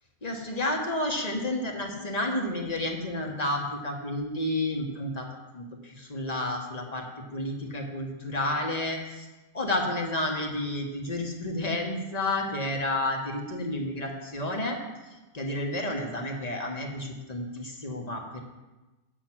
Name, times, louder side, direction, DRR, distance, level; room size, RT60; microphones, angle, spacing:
voice 1, 0.2-5.3 5.5-7.0 7.3-9.3 9.5-14.8 15.3-18.4, left 1 dB, 30° left, 2 dB, 1.3 m, -31 dB
8.2 x 7.0 x 6.0 m, 1.1 s
omnidirectional pair, 1.4 m